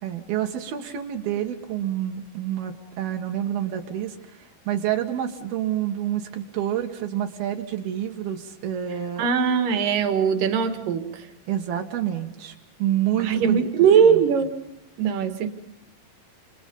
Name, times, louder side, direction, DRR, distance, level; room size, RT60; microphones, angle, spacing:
voice 1, 0.0-4.2 4.7-9.3 11.5-12.5 12.8-13.7 14.1-14.2, right 11 dB, 80° right, 3 dB, 3.5 m, -28 dB
voice 2, 9.2-11.3 13.2-14.6 15.0-15.5, right 7 dB, 65° right, 8 dB, 3.4 m, -20 dB
29.0 x 28.0 x 5.5 m, 0.87 s
omnidirectional pair, 4.4 m